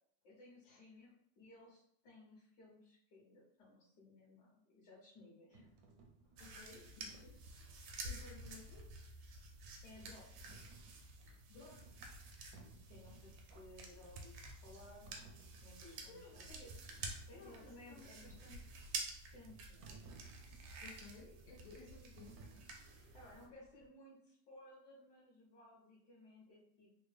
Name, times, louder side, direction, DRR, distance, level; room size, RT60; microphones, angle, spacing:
voice 1, 0.2-5.7 9.8-10.3 12.9-15.3 15.6-16.7 17.3-18.7 19.3-20.0 20.5-20.7 23.1-26.9, left 1 dB, 60° left, -6 dB, 1.5 m, -59 dB
sound 1, 5.5-23.8, right 3 dB, 70° right, 0.9 m, -62 dB
voice 2, 6.4-7.6 7.8-8.9 11.5-11.9 15.8-16.5 17.3-18.2 20.8-22.4, left 4 dB, 80° left, -2 dB, 1.5 m, -58 dB
sound 2, 6.4-23.5, right 3 dB, 90° right, 1.4 m, -50 dB
3.7 x 2.2 x 3.2 m, 0.66 s
omnidirectional pair, 2.0 m